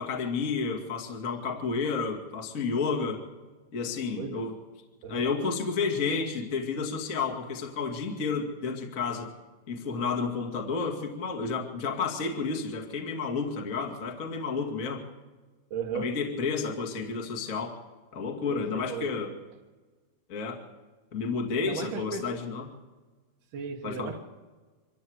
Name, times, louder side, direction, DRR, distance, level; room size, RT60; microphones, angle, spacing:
voice 1, 0.0-3.2 3.7-4.5 5.1-9.3 9.7-15.0 15.9-17.7 18.1-19.3 20.3-20.6 21.1-22.6 23.8-24.1, left 4 dB, 35° left, 1 dB, 1.3 m, -31 dB
voice 2, 15.7-16.2 18.5-19.4 21.6-22.4 23.5-24.2, right 6 dB, 65° right, -1 dB, 2.1 m, -36 dB
24.5 x 14.5 x 8.0 m, 1.3 s
omnidirectional pair, 5.2 m